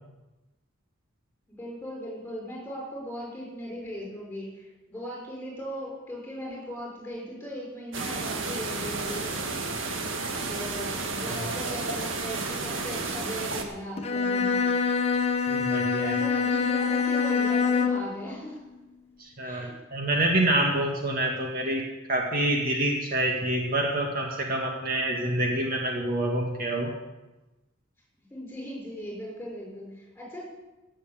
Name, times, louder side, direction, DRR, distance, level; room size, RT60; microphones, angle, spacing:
voice 1, 1.5-9.8 10.5-14.8 16.0-18.6 19.4-19.8 28.3-30.5, equal, 10° left, -2 dB, 6.1 m, -38 dB
sound 1, 7.9-13.6, right 3 dB, 75° right, 1.8 m, -32 dB
Bowed string instrument, 14.0-18.2, left 5 dB, 35° left, 1.3 m, -25 dB
voice 2, 15.5-16.2 19.2-26.9, right 1 dB, 50° right, 0 dB, 2.0 m, -27 dB
16.5 x 7.7 x 7.5 m, 1.1 s
head